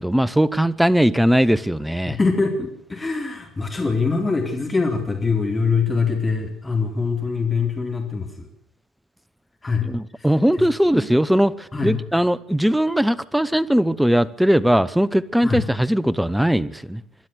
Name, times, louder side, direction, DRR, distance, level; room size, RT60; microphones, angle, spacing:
voice 1, 0.0-2.2 9.8-17.0, equal, 5° right, 17 dB, 1.1 m, -19 dB
voice 2, 2.1-8.5 9.6-9.9 10.2-10.3 10.6-10.7 10.9-11.1 11.7-12.0 15.4-15.6, left 4 dB, 20° left, 3 dB, 3.8 m, -23 dB
26.5 x 12.0 x 8.0 m, 0.68 s
hypercardioid pair, 60°, 0 cm